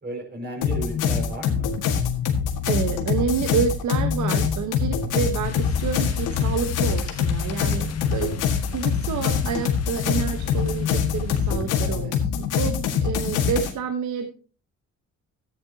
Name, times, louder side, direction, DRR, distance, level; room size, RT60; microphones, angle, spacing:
voice 1, 0.0-1.7 11.7-12.2, right 1 dB, 35° right, 1 dB, 5.0 m, -34 dB
sound 1, 0.6-13.7, left 7 dB, 90° left, 1.8 m, -24 dB
voice 2, 2.7-8.4 8.7-14.3, right 7 dB, 70° right, 8 dB, 1.1 m, -28 dB
sound 2, 5.4-11.6, left 6 dB, 55° left, 1.2 m, -33 dB
13.5 x 9.5 x 2.8 m, 0.35 s
cardioid pair, 90°, 30 cm